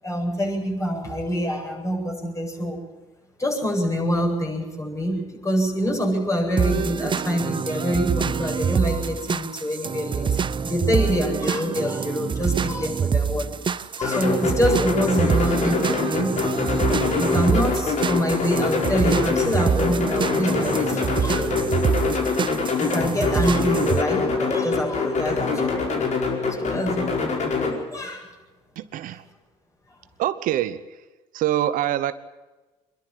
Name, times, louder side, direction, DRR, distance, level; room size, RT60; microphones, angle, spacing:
voice 1, 0.0-2.8 3.4-16.4 16.9-21.6 22.8-25.9 26.5-27.1 27.9-28.3, equal, 20° left, 0 dB, 8.0 m, -26 dB
sound 1, 6.6-24.0, right 6 dB, 35° right, 0.7 m, -26 dB
sound 2, 14.0-27.7, left 4 dB, 50° left, 5.1 m, -25 dB
voice 2, 28.8-29.2 30.2-30.8 31.3-32.1, right 12 dB, 70° right, 13 dB, 0.9 m, -24 dB
24.5 x 12.0 x 10.0 m, 1.2 s
supercardioid pair, 70°, 15 cm